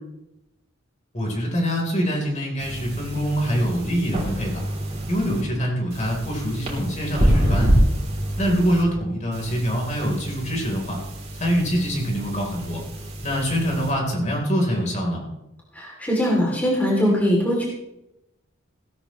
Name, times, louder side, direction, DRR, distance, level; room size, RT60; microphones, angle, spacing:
voice 1, 1.1-4.6 5.1-7.7 8.4-11.0 11.4-12.8 13.2-15.2, equal, 35° left, 0 dB, 3.8 m, -24 dB
sound 1, 2.6-5.4 5.9-8.8 9.3-13.9, equal, 30° right, 3.2 m, -26 dB
voice 2, 15.7-17.6, equal, 10° left, -4 dB, 2.9 m, -21 dB
16.5 x 12.5 x 3.2 m, 0.87 s
head